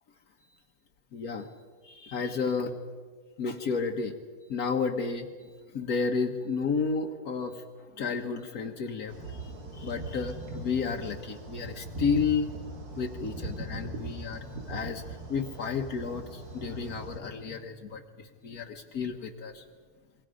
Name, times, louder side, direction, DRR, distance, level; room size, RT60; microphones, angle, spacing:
voice 1, 1.1-1.6 1.8-2.7 3.4-4.1 4.4-7.6 8.0-12.5 13.0-19.6, left 5 dB, 75° left, 3 dB, 1.6 m, -32 dB
sound 1, 9.1-17.2, right 2 dB, 85° right, 3.0 m, -40 dB
27.0 x 22.5 x 5.1 m, 1.5 s
omnidirectional pair, 1.6 m